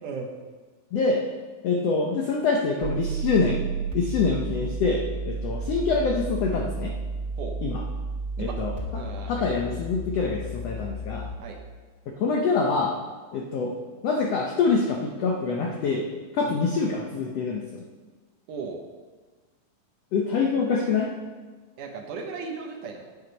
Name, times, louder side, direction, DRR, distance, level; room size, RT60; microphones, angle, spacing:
voice 1, 0.0-0.3 7.4-7.6 8.4-8.6 8.9-9.6 11.4-11.6 16.4-16.6 18.5-18.8 21.8-23.1, right 4 dB, 70° right, 2 dB, 2.3 m, -36 dB
voice 2, 0.9-1.2 1.6-3.7 3.9-6.9 7.6-7.9 8.4-11.3 12.2-12.9 13.3-13.7 14.0-16.1 16.3-17.8 20.1-21.1, left 4 dB, 80° left, 1 dB, 1.4 m, -25 dB
sound 1, 2.8-11.3, right 3 dB, 45° right, 2.7 m, -32 dB
9.2 x 8.3 x 5.3 m, 1.4 s
omnidirectional pair, 4.1 m